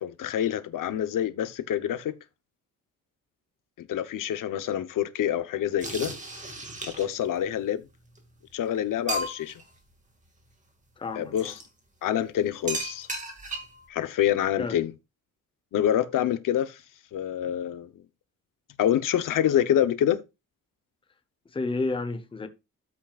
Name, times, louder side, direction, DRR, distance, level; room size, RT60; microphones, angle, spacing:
voice 1, 0.0-2.1 3.8-6.1 7.0-7.8 8.5-9.5 11.1-11.5 12.0-13.1 13.9-14.9 15.7-16.8 17.1-17.9 18.8-20.2, left 10 dB, 70° left, 0.9 m, -26 dB
sound 1, 5.8-7.3 8.2-8.3 8.6-8.7 9.1-9.6 11.4-11.6 12.7-13.8, right 2 dB, 20° right, 2.0 m, -34 dB
voice 2, 11.0-11.5 14.6-14.8 21.5-22.5, left 3 dB, 15° left, 0.8 m, -31 dB
13.5 x 5.9 x 2.4 m
cardioid pair, 170°, 33 cm